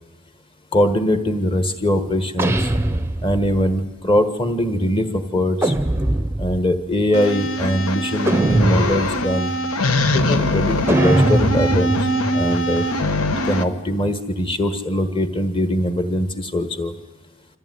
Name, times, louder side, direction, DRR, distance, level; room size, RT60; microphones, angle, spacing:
voice 1, 0.7-2.7 3.2-5.7 6.4-9.5 10.1-12.1 12.3-12.9 13.5-16.9, equal, 25° left, 8 dB, 1.4 m, -21 dB
sound 1, 2.4-3.7 5.6-6.7 8.3-9.3 10.9-13.6, right 1 dB, 10° right, 0.7 m, -22 dB
sound 2, 7.1-13.6, left 1 dB, 75° left, 1.3 m, -22 dB
26.0 x 14.5 x 9.4 m, 1.2 s
head